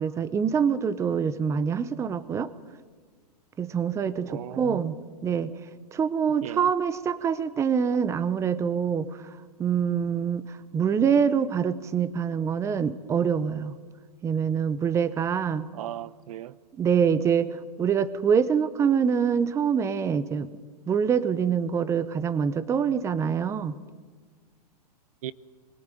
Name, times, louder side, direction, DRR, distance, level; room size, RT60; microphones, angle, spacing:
voice 1, 0.0-2.5 3.6-5.0 5.2-5.5 5.9-9.1 9.6-10.5 10.7-13.7 14.2-15.7 16.8-20.5 20.9-23.7, right 7 dB, 15° right, 0.8 m, -25 dB
voice 2, 4.2-4.9 6.4-6.7 15.7-16.6 25.2-25.3, right 13 dB, 60° right, 0.8 m, -37 dB
23.0 x 17.5 x 9.2 m
hypercardioid pair, 135°, 21 cm